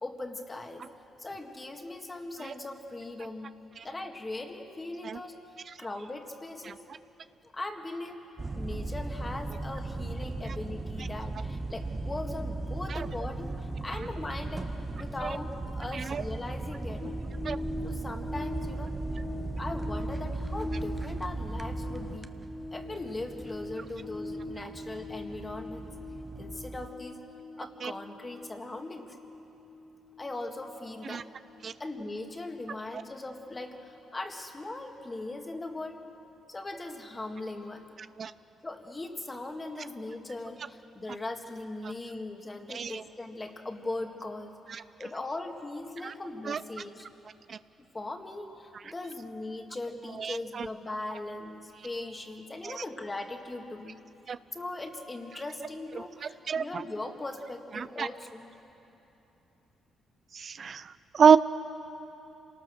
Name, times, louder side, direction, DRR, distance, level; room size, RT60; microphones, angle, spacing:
voice 1, 0.0-0.8 1.2-3.6 3.8-5.4 5.8-6.8 7.4-8.2 8.5-17.0 17.8-18.9 19.6-22.3 22.7-25.9 26.4-27.2 27.6-29.2 30.2-31.3 31.8-36.0 36.5-37.9 38.6-44.5 45.0-47.1 47.9-54.0 54.5-58.5, left 2 dB, 20° left, 4 dB, 1.9 m, -39 dB
sound 1, 8.4-26.9, right 2 dB, 20° right, 0.9 m, -37 dB
sound 2, 17.0-33.6 33.8-34.0, left 1 dB, 55° left, 2.5 m, -43 dB
voice 2, 42.7-43.0 44.7-44.8 46.0-46.1 46.5-46.6 47.5-47.6 50.2-50.7 52.6-52.8 54.3-54.4 56.2-56.8 57.8-58.1 60.3-61.4, right 7 dB, 50° right, 14 dB, 0.4 m, -27 dB
27.0 x 19.0 x 6.5 m, 2.9 s
cardioid pair, 90°, 0 cm